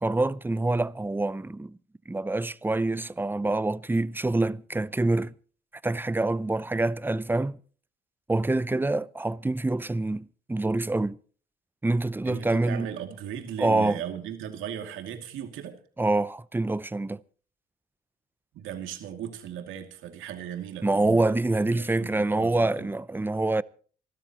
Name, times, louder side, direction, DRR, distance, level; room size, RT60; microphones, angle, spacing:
voice 1, 0.0-1.8 2.1-5.3 5.8-7.6 8.3-11.2 11.8-12.9 13.6-14.0 16.0-17.2 20.8-23.6, right 2 dB, 10° right, 0.6 m, -26 dB
voice 2, 12.2-15.8 18.5-21.4 21.7-22.9, right 9 dB, 90° right, 2.5 m, -37 dB
28.0 x 13.0 x 3.0 m
cardioid pair, 90°, 20 cm